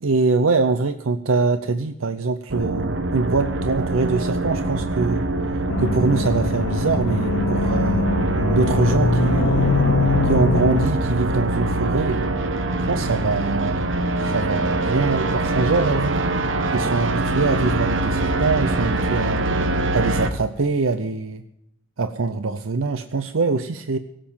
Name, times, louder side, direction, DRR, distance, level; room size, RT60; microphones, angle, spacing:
voice 1, 0.0-5.2 5.8-8.0 8.5-9.7 10.2-12.2 12.9-13.9 14.2-16.2 16.7-19.4 19.9-21.4 22.0-24.0, right 4 dB, 90° right, 9 dB, 0.7 m, -23 dB
sound 1, 2.5-20.3, right 2 dB, 65° right, 1.0 m, -23 dB
sound 2, 5.7-10.9, left 3 dB, 70° left, 0.8 m, -22 dB
17.5 x 7.7 x 7.2 m, 0.77 s
head